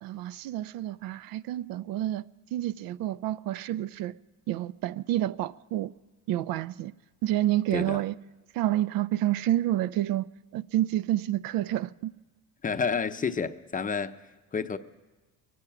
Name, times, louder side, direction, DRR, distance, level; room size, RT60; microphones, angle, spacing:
voice 1, 0.0-2.3 2.5-4.1 4.5-5.9 6.3-6.9 7.2-8.1 8.5-10.3 10.5-12.1, right 14 dB, 65° right, 0.5 m, -29 dB
voice 2, 12.6-14.2 14.5-14.8, left 5 dB, 20° left, 0.6 m, -29 dB
22.5 x 8.5 x 5.8 m
supercardioid pair, 85°, 38 cm